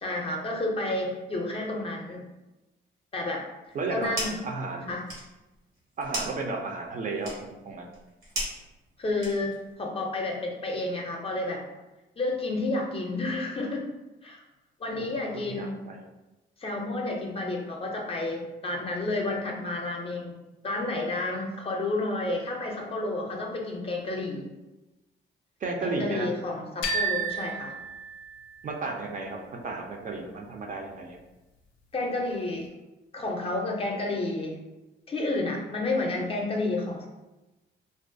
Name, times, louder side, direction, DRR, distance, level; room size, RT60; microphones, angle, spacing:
voice 1, 0.0-2.3 3.1-3.4 3.9-4.4 4.9-5.1 9.0-11.6 12.2-13.9 14.2-14.4 14.8-15.8 16.6-20.4 20.6-24.5 25.8-27.7 31.9-32.7 33.1-34.6 35.1-37.1, left 2 dB, 30° left, 0 dB, 0.5 m, -30 dB
voice 2, 3.7-4.1 4.4-4.9 6.0-7.9 14.9-16.0 25.6-26.3 28.6-31.2, right 3 dB, 40° right, 1 dB, 0.4 m, -33 dB
sound 1, 3.7-4.5 4.8-9.7, right 1 dB, 85° right, 0.9 m, -37 dB
sound 2, 26.8-28.7, right 3 dB, 90° left, 0.4 m, -31 dB
2.3 x 2.1 x 2.5 m, 1.0 s
cardioid pair, 90°, 20 cm